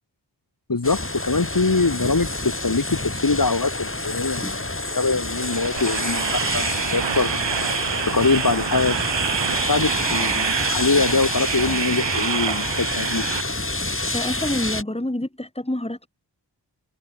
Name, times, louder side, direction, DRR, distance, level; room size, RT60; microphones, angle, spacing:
voice 1, 0.7-4.6 5.0-7.4 8.1-9.1 9.6-13.2, left 3 dB, 50° left, 2.4 m, -23 dB
sound 1, 0.8-14.8, left 2 dB, 30° left, 3.5 m, -28 dB
sound 2, 5.4-13.4, right 8 dB, 75° right, 0.8 m, -26 dB
voice 2, 14.1-16.1, left 1 dB, 15° left, 3.4 m, -27 dB
wide cardioid pair, 40°, 43 cm